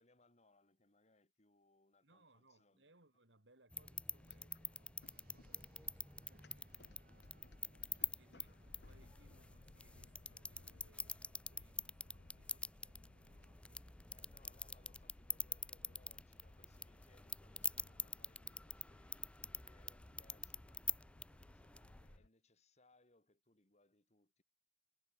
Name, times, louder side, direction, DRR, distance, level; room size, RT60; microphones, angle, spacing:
voice 1, 0.0-2.9 14.1-20.8 21.4-24.4, left 2 dB, 40° left, 3.3 m, -72 dB
voice 2, 2.0-7.3 8.0-14.5, right 2 dB, 85° right, 4.6 m, -71 dB
sound 1, 3.7-22.2, left 3 dB, 5° left, 0.4 m, -47 dB
sound 2, 4.2-22.3, left 2 dB, 65° left, 1.0 m, -64 dB
sound 3, 5.0-11.1, right 1 dB, 55° right, 7.8 m, -71 dB
head